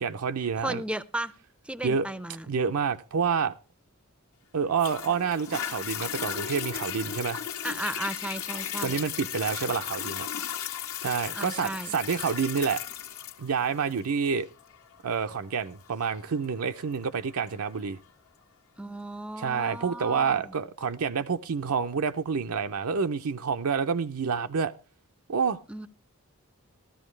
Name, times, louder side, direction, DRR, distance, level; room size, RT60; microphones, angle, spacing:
voice 1, 0.0-0.8 1.8-2.1 2.5-3.5 4.5-7.4 8.5-10.3 11.0-12.8 13.4-14.5 15.0-18.0 19.4-24.7 25.3-25.6, right 6 dB, 70° right, 0.6 m, -28 dB
voice 2, 0.6-1.3 1.6-2.5 7.6-9.0 11.3-11.9 18.8-20.6 25.7-25.9, right 1 dB, 5° right, 0.5 m, -35 dB
Toilet flush, 4.8-17.8 18.4-18.5, left 9 dB, 70° left, 1.4 m, -36 dB
14.0 x 13.0 x 3.2 m
head